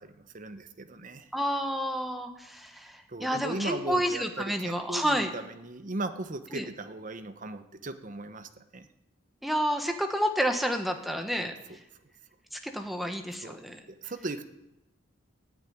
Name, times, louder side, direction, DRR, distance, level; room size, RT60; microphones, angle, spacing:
voice 1, 0.0-1.3 3.1-8.9 11.4-11.8 13.4-13.6 14.0-14.4, right 2 dB, 40° right, 9 dB, 1.0 m, -38 dB
voice 2, 1.3-5.3 6.5-6.7 9.4-11.5 12.5-13.8, equal, ahead, 5 dB, 1.3 m, -30 dB
14.5 x 8.8 x 9.4 m, 0.92 s
head